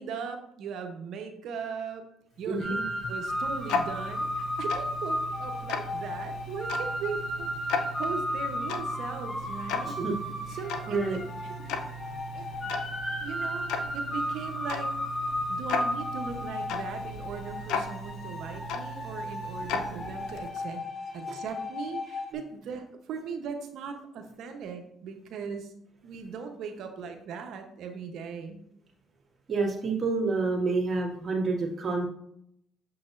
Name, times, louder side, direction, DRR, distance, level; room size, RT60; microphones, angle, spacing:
voice 1, 0.0-2.0 2.4-2.7 3.1-10.0 10.5-11.2 11.5-11.8 12.3-12.8 13.2-13.7 13.9-14.9 15.5-20.8 21.1-25.7 26.0-28.6, right 5 dB, 70° right, 5 dB, 0.9 m, -39 dB
Tick-tock, 2.4-20.7, left 3 dB, 85° left, 0.6 m, -37 dB
voice 2, 2.5-2.8 9.8-10.1 10.5-10.6 10.9-11.2 21.3-21.4 29.5-32.1, right 3 dB, 40° right, -2 dB, 2.0 m, -28 dB
sound 1, 2.6-22.3, left 1 dB, 25° left, 1.2 m, -34 dB
6.6 x 5.9 x 2.6 m, 0.73 s
supercardioid pair, 80°, 0 cm